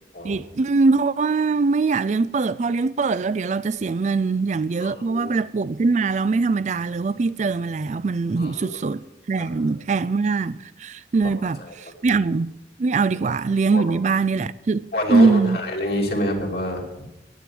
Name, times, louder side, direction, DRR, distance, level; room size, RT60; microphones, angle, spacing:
voice 1, 0.2-12.5 12.8-15.6, right 4 dB, 40° right, 0.4 m, -22 dB
voice 2, 4.8-5.3 8.4-8.8 9.4-9.5 11.7-11.8 12.1-12.2 13.7-13.8 14.9-17.1, equal, 60° left, 2.5 m, -27 dB
9.9 x 9.3 x 7.7 m
head